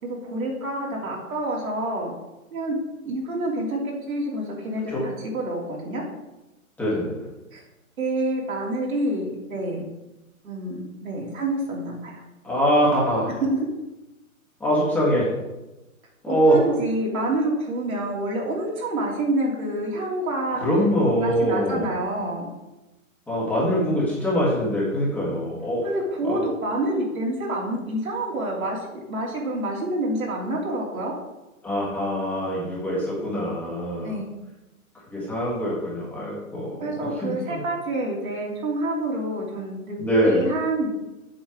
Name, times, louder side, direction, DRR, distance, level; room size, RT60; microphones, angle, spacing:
voice 1, 0.0-2.1 2.5-2.8 3.0-6.0 7.5-7.6 8.0-9.8 10.4-12.2 13.4-13.6 16.3-20.7 21.2-22.4 25.8-31.1 34.0-34.3 36.8-40.0 40.2-40.9, right 1 dB, 75° right, -2 dB, 3.5 m, -28 dB
voice 2, 6.8-7.1 12.4-13.3 14.6-15.3 16.2-16.6 20.5-21.9 23.3-25.8 26.2-26.4 31.6-34.1 35.1-37.6 40.0-40.4, equal, 5° left, -7 dB, 1.6 m, -23 dB
7.7 x 6.7 x 5.1 m, 1.0 s
hypercardioid pair, 160°, 42 cm